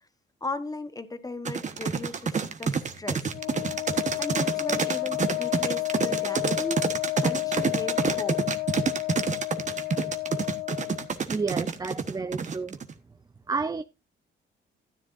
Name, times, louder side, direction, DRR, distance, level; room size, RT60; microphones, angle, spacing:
voice 1, 0.4-3.3 4.2-6.8 7.2-8.4, left 2 dB, 20° left, 1.2 m, -36 dB
sound 1, 1.4-12.9, right 5 dB, 35° right, 1.2 m, -28 dB
Wind instrument woodwind instrument, 3.3-11.1, left 22 dB, 65° left, 0.6 m, -31 dB
voice 2, 11.2-12.8 13.5-13.8, right 4 dB, 20° right, 0.5 m, -30 dB
13.0 x 10.0 x 2.6 m
cardioid pair, 90°, 20 cm